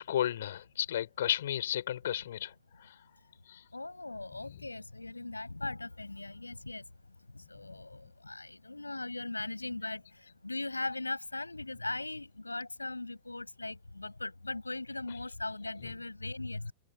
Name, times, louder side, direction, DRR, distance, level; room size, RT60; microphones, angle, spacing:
voice 1, 0.0-2.5 3.5-3.6, left 11 dB, 60° left, 4.6 m, -32 dB
voice 2, 3.7-16.7, left 2 dB, 85° left, 7.2 m, -39 dB
figure-of-eight pair, 90°, 0 cm